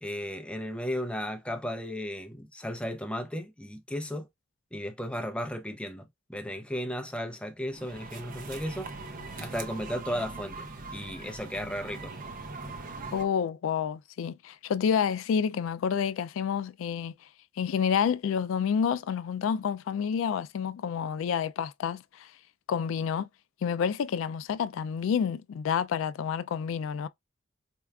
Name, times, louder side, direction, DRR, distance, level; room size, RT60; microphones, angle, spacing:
voice 1, 0.0-4.3 4.7-8.9 9.4-12.1, equal, 5° left, 0.5 m, -35 dB
sound 1, 7.7-13.2, right 3 dB, 40° right, 0.6 m, -41 dB
voice 2, 13.1-17.1 17.6-22.3 22.7-23.3 23.6-27.1, left 7 dB, 75° left, 0.3 m, -29 dB
4.5 x 2.3 x 2.3 m
head